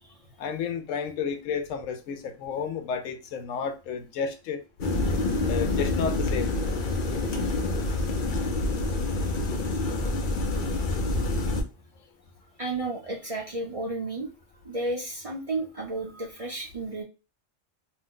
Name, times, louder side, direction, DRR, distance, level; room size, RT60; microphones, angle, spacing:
voice 1, 0.4-4.6 5.5-6.6, left 6 dB, 80° left, 1.0 m, -31 dB
sound 1, 4.8-11.6, left 2 dB, 55° left, 0.6 m, -27 dB
voice 2, 12.6-14.3 14.6-17.0, right 2 dB, 35° right, 0.7 m, -32 dB
2.7 x 2.1 x 3.6 m
omnidirectional pair, 1.3 m